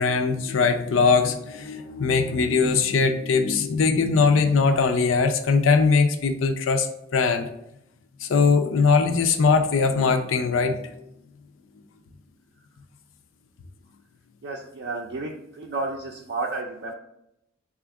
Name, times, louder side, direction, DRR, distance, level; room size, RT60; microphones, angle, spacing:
voice 1, 0.0-7.5 8.2-10.9, left 4 dB, 90° left, 7 dB, 0.5 m, -21 dB
voice 2, 14.4-16.9, right 3 dB, 60° right, -1 dB, 0.4 m, -32 dB
4.2 x 2.4 x 4.7 m, 0.81 s
head